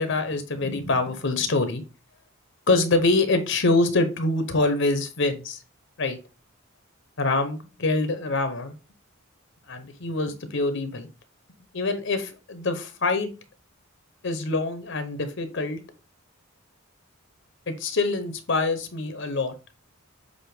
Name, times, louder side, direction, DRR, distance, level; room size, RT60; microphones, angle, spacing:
voice 1, 0.0-1.8 2.7-5.6 6.0-6.2 7.2-8.7 9.7-11.1 11.7-13.3 14.2-15.8 17.7-19.5, left 3 dB, 60° left, 9 dB, 0.9 m, -25 dB
7.9 x 2.8 x 4.8 m, 0.31 s
head